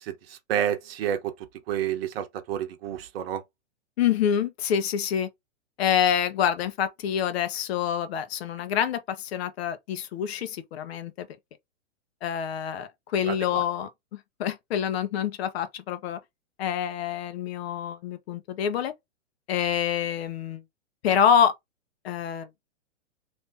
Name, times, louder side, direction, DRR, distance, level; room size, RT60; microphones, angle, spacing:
voice 1, 0.0-1.4 1.7-3.4 13.2-13.6, right 10 dB, 50° right, 0.9 m, -30 dB
voice 2, 4.0-5.3 5.8-11.3 12.2-16.2 16.6-18.9 19.5-20.6 21.0-21.5 22.0-22.5, left 8 dB, 55° left, 0.9 m, -26 dB
3.4 x 2.7 x 2.6 m
hypercardioid pair, 125°, 37 cm